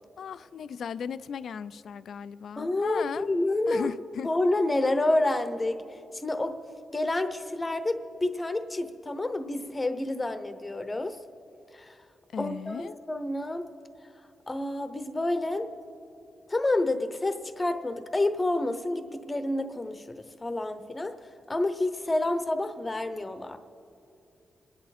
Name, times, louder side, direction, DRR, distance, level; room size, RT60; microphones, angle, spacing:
voice 1, 0.2-3.3 3.7-4.3 12.3-13.0, left 7 dB, 65° left, 15 dB, 0.3 m, -36 dB
voice 2, 2.6-3.9 4.2-5.7 6.1-6.5 6.9-11.2 11.7-11.9 12.4-13.7 14.5-15.7 16.5-21.1 21.5-23.6, left 2 dB, 20° left, 9 dB, 0.8 m, -28 dB
28.5 x 10.5 x 4.2 m, 2.6 s
wide cardioid pair, 135°, 0 cm